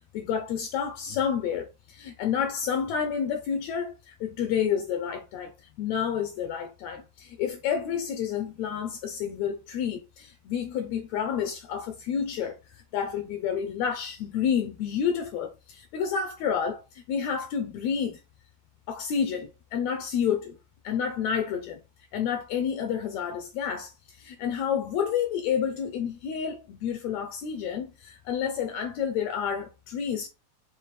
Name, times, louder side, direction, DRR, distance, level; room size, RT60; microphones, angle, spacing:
voice 1, 0.1-18.2 18.9-20.6 20.8-21.8 22.1-30.3, left 7 dB, 80° left, 1.7 m, -29 dB
5.6 x 2.4 x 3.2 m
omnidirectional pair, 3.4 m